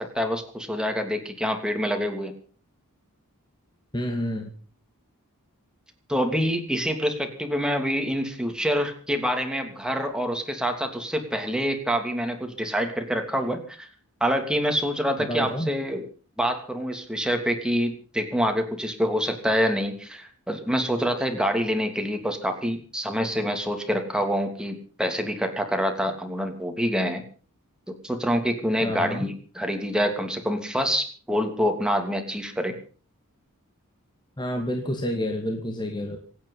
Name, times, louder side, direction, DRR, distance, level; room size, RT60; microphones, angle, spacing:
voice 1, 0.0-2.3 6.1-13.9 14.2-16.0 16.4-27.2 28.0-32.7, equal, 5° right, 5 dB, 2.9 m, -26 dB
voice 2, 3.9-4.5 15.2-15.7 28.8-29.3 34.4-36.2, equal, 20° left, 3 dB, 2.3 m, -29 dB
26.5 x 9.4 x 5.6 m, 0.40 s
head